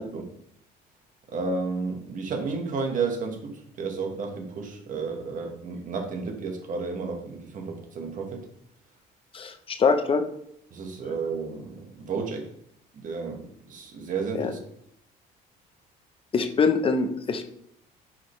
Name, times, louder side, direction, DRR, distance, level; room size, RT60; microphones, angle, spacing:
voice 1, 1.3-8.5 10.7-12.5 12.9-14.6, right 4 dB, 50° right, 2 dB, 1.5 m, -32 dB
voice 2, 9.3-10.2 14.3-14.5 16.3-17.4, left 4 dB, 30° left, 7 dB, 0.8 m, -23 dB
5.7 x 5.0 x 3.3 m, 0.73 s
cardioid pair, 110°, 17 cm